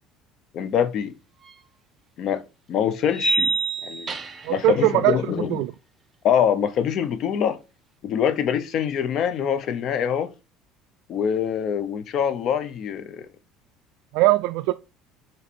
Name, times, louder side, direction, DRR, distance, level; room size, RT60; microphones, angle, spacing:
voice 1, 0.5-1.1 2.2-2.4 2.7-4.2 4.5-5.7 6.2-7.6 8.0-10.3 11.1-13.3, left 8 dB, 50° left, 0.8 m, -24 dB
sound 1, 1.5-1.6 3.1-4.6, right 3 dB, 20° right, 0.7 m, -25 dB
voice 2, 4.4-5.2 5.5-5.7 14.1-14.7, right 18 dB, 75° right, 0.3 m, -20 dB
7.3 x 3.2 x 4.3 m
cardioid pair, 135°, 0 cm